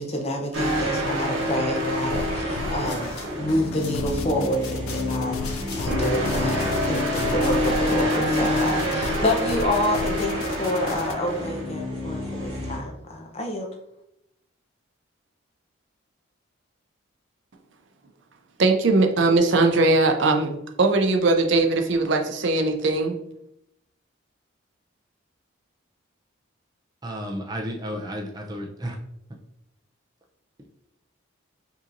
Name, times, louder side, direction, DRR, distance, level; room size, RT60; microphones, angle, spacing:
voice 1, 0.0-13.7, left 1 dB, 30° left, 0.7 m, -28 dB
sound 1, 0.5-12.8, left 1 dB, 75° right, 1.2 m, -27 dB
sound 2, 2.1-11.1, left 3 dB, 85° left, 0.4 m, -35 dB
sound 3, 2.8-7.9, left 3 dB, 50° left, 0.9 m, -44 dB
voice 2, 18.6-23.2, right 3 dB, 60° right, 0.5 m, -20 dB
voice 3, 27.0-29.0, equal, 20° right, 0.6 m, -32 dB
5.4 x 2.8 x 2.6 m
head